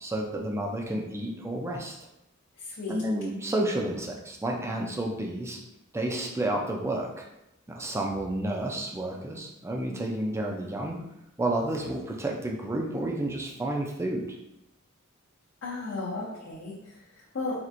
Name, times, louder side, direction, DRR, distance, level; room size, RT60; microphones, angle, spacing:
voice 1, 0.0-2.0 2.9-5.6 5.9-7.3 7.7-11.0 11.4-14.3, right 1 dB, 15° right, 0 dB, 0.4 m, -30 dB
voice 2, 2.6-3.0 15.6-17.6, left 3 dB, 60° left, -7 dB, 0.7 m, -35 dB
4.3 x 2.5 x 2.5 m, 0.88 s
head